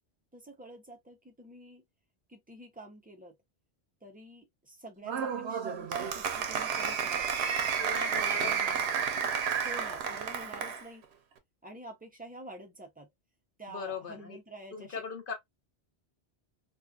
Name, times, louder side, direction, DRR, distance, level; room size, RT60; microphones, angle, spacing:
voice 1, 0.3-1.8 2.3-3.3 4.0-7.5 8.3-8.7 9.6-11.0 11.6-13.1 13.6-15.0, right 1 dB, 15° right, 0.3 m, -48 dB
Applause, 5.0-10.8, right 7 dB, 75° right, 0.8 m, -31 dB
voice 2, 7.8-9.0 13.7-14.4 14.7-15.3, left 5 dB, 55° left, 0.9 m, -40 dB
2.6 x 2.4 x 2.3 m
omnidirectional pair, 1.1 m